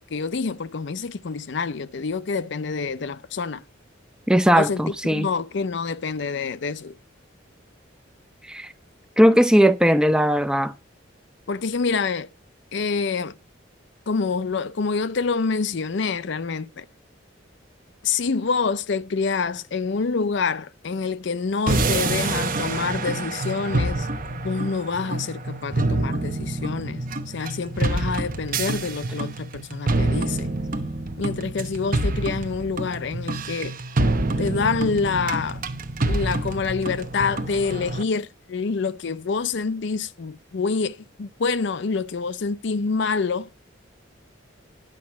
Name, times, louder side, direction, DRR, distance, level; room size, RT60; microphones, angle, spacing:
voice 1, 0.1-3.6 4.5-7.0 11.5-12.3 12.7-13.3 14.1-16.8 18.0-30.5 31.2-33.8 34.4-35.6 36.1-43.5, left 4 dB, 60° left, 0.5 m, -27 dB
voice 2, 4.3-5.3 8.5-8.7 9.2-10.7, equal, 5° right, 0.5 m, -18 dB
sound 1, 21.7-38.0, right 2 dB, 45° right, 0.9 m, -27 dB
10.5 x 5.7 x 7.3 m
head